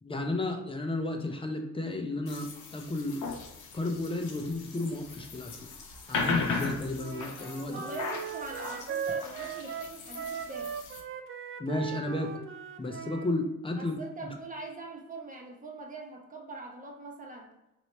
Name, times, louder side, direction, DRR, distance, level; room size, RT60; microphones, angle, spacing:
voice 1, 0.0-3.2 3.7-5.7 6.1-7.8 11.6-12.4 12.8-13.9, left 2 dB, 15° left, 4 dB, 0.7 m, -33 dB
sound 1, 2.3-11.0, left 4 dB, 75° left, 0.8 m, -37 dB
Wind instrument woodwind instrument, 7.0-13.3, right 7 dB, 45° right, 0.4 m, -38 dB
voice 2, 7.7-10.8 13.8-17.6, right 3 dB, 25° right, 1 dB, 1.0 m, -42 dB
3.2 x 3.0 x 4.1 m, 0.90 s
cardioid pair, 90°, 30 cm